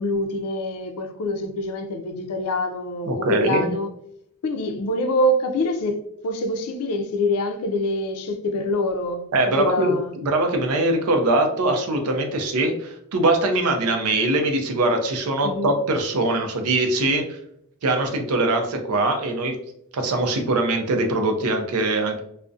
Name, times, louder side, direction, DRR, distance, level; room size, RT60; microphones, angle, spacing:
voice 1, 0.0-3.9 4.4-10.1 15.4-15.7, left 1 dB, 90° left, 0.4 m, -25 dB
voice 2, 3.1-3.7 9.3-17.4 17.8-19.5 19.9-22.2, right 2 dB, 85° right, 0.5 m, -22 dB
2.3 x 2.1 x 2.5 m
head